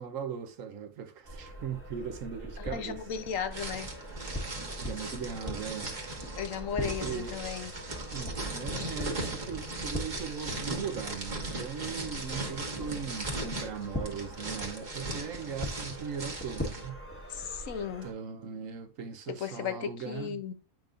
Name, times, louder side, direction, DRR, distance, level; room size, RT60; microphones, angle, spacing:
voice 1, 0.0-3.1 4.8-5.9 6.8-7.4 8.1-17.0 18.0-20.4, right 7 dB, 65° right, 1.1 m, -39 dB
sound 1, 1.2-18.1, equal, 10° left, 1.1 m, -42 dB
voice 2, 2.6-3.9 6.4-7.7 17.3-18.1 19.3-20.5, left 7 dB, 65° left, 1.1 m, -35 dB
sound 2, 3.5-16.9, right 2 dB, 30° right, 1.3 m, -38 dB
9.1 x 5.1 x 2.5 m
omnidirectional pair, 1.6 m